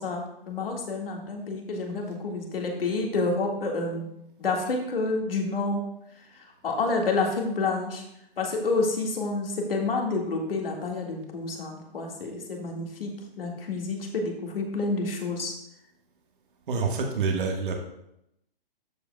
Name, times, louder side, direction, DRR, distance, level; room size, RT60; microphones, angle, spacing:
voice 1, 0.0-4.1 4.4-5.8 6.6-8.0 8.4-13.1 13.4-15.5, left 3 dB, 70° left, 1 dB, 1.9 m, -29 dB
voice 2, 16.7-17.8, right 4 dB, 60° right, 2 dB, 1.4 m, -27 dB
13.5 x 5.0 x 2.3 m, 0.81 s
hypercardioid pair, 135°, 29 cm